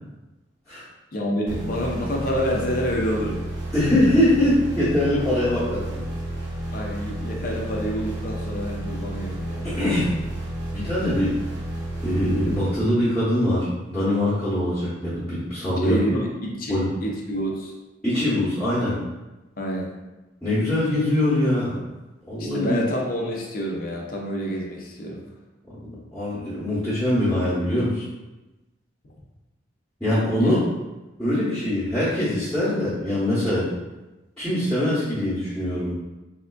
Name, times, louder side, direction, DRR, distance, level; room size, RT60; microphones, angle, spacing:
voice 1, 1.1-3.4 6.7-9.8 15.8-17.7 19.6-19.9 22.4-25.2 30.4-30.6, equal, 45° left, -1 dB, 0.5 m, -28 dB
sound 1, 1.5-13.2, right 1 dB, 90° right, 0.8 m, -31 dB
voice 2, 3.7-6.0 9.6-10.1 10.7-11.4 12.0-16.0 16.7-16.9 18.0-19.0 20.4-21.8 22.3-22.8 25.8-28.0 30.0-30.7 31.2-33.7 34.4-35.9, left 1 dB, 5° left, -14 dB, 0.8 m, -23 dB
3.5 x 2.4 x 2.2 m, 1.1 s
head